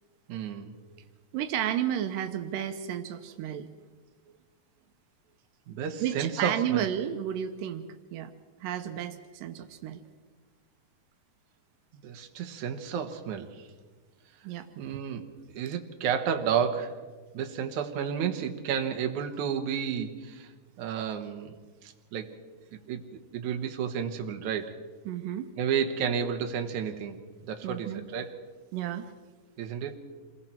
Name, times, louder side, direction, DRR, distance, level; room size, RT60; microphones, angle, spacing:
voice 1, 0.3-0.7 5.7-6.9 12.0-13.7 14.8-15.3 15.5-17.0 17.3-20.5 20.8-21.5 21.8-22.4 22.7-24.7 25.6-28.3 29.6-30.0, right 7 dB, 65° right, 4 dB, 2.6 m, -31 dB
voice 2, 1.3-3.7 6.0-8.3 8.6-10.0 14.4-15.0 25.1-25.5 27.6-28.0 28.7-29.1, right 10 dB, 85° right, 8 dB, 2.5 m, -32 dB
27.5 x 21.0 x 4.5 m, 1.4 s
omnidirectional pair, 3.8 m